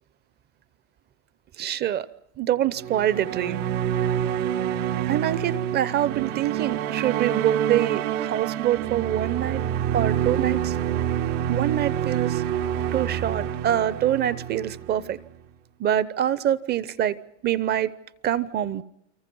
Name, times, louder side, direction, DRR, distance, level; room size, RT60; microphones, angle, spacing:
voice 1, 1.6-2.1 2.4-3.7 5.1-9.6 9.9-10.8 11.5-12.4 12.9-15.2 15.8-17.2 17.4-17.9 18.2-18.8, right 11 dB, 25° right, 18 dB, 0.9 m, -25 dB
sound 1, 2.8-15.2, right 10 dB, 75° right, 2.6 m, -27 dB
30.0 x 24.5 x 5.5 m, 0.76 s
supercardioid pair, 155°, 37 cm